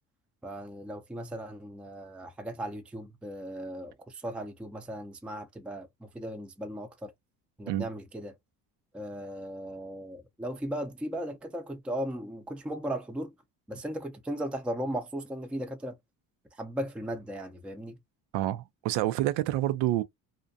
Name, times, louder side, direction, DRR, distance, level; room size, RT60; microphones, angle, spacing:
voice 1, 0.4-7.1 7.6-8.3 8.9-13.3 13.7-16.0 16.5-18.0, right 1 dB, 5° right, 0.4 m, -37 dB
voice 2, 18.3-20.0, right 14 dB, 85° right, 0.5 m, -28 dB
2.5 x 2.1 x 2.6 m
cardioid pair, 95°, 41 cm